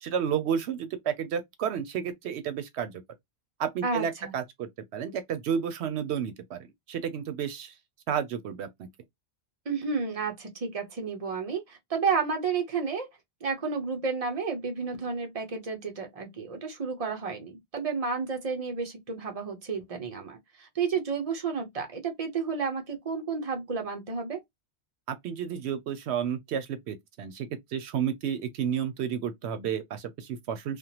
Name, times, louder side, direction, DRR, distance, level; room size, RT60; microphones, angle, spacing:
voice 1, 0.0-2.9 3.6-6.6 6.9-7.7 8.1-8.9 25.1-30.8, right 8 dB, 85° right, 0.9 m, -31 dB
voice 2, 3.8-4.4 9.7-13.1 13.4-24.4, right 5 dB, 35° right, 0.9 m, -31 dB
3.4 x 2.0 x 2.9 m
omnidirectional pair, 1.1 m